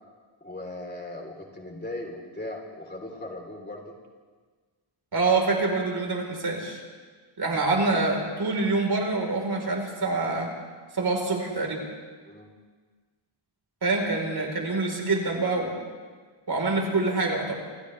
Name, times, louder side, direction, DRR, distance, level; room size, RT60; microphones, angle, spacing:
voice 1, 0.4-3.9 12.3-12.5, left 1 dB, 20° left, 0 dB, 3.6 m, -38 dB
voice 2, 5.1-6.8 7.4-10.5 10.9-11.8 13.8-15.8 16.5-17.6, right 3 dB, 50° right, 0 dB, 4.2 m, -26 dB
29.0 x 28.5 x 3.4 m, 1.5 s
wide cardioid pair, 165°, 49 cm